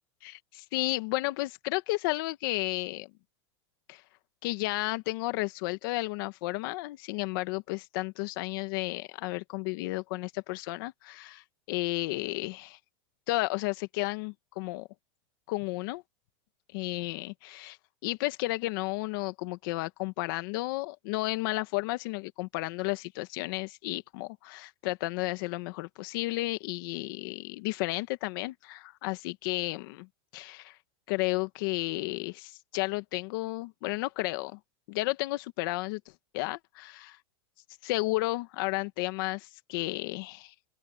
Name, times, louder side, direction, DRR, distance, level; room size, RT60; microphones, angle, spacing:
voice 1, 0.2-3.1 3.9-4.0 4.4-12.8 13.3-14.9 15.5-16.0 16.7-17.8 18.0-30.1 30.3-30.8 31.1-34.6 34.9-36.0 36.3-37.2 37.8-40.5, left 21 dB, 50° left, 1.5 m, -32 dB
open air
supercardioid pair, 170°, 15 cm